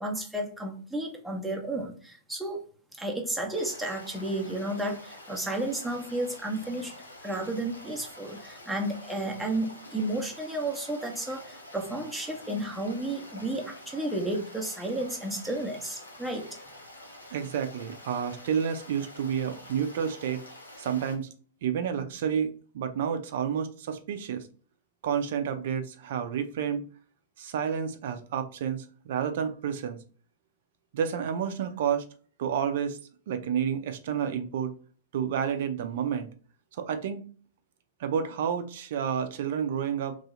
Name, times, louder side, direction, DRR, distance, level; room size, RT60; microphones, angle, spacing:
voice 1, 0.0-2.6 3.0-7.0 7.2-16.5, right 1 dB, 5° right, 0 dB, 0.9 m, -32 dB
Stream, 3.5-21.2, left 1 dB, 85° left, 0.8 m, -47 dB
voice 2, 17.3-20.4 20.8-21.3 21.6-24.5 25.0-26.9 27.4-30.0 30.9-32.0 32.4-33.0 33.3-34.7 35.1-36.3 36.7-37.2 38.0-40.2, right 8 dB, 55° right, 8 dB, 0.5 m, -30 dB
3.1 x 2.8 x 3.6 m, 0.42 s
figure-of-eight pair, 105°, 0 cm